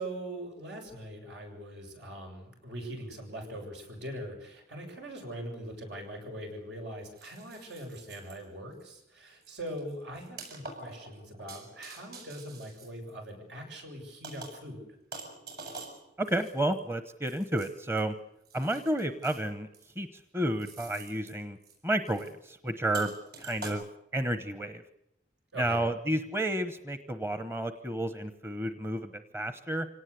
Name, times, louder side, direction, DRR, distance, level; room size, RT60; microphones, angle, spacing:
voice 1, 0.0-14.9 25.5-25.9, right 1 dB, 80° right, 3 dB, 7.4 m, -41 dB
sound 1, 5.6-5.7 7.1-8.4 8.8-9.0 9.4-13.6 14.2-14.7 15.1-18.0 18.5-19.4 19.7-20.2 20.6-21.3 21.6-21.8 22.1-22.3 22.9-23.7, right 3 dB, 60° right, 6.7 m, -47 dB
voice 2, 16.2-18.1 18.5-19.7 20.0-20.1 20.3-21.6 21.8-23.1 23.4-23.8 24.1-24.8 25.6-29.9, right 1 dB, 15° right, 10 dB, 1.0 m, -31 dB
25.5 x 18.0 x 8.3 m, 0.81 s
head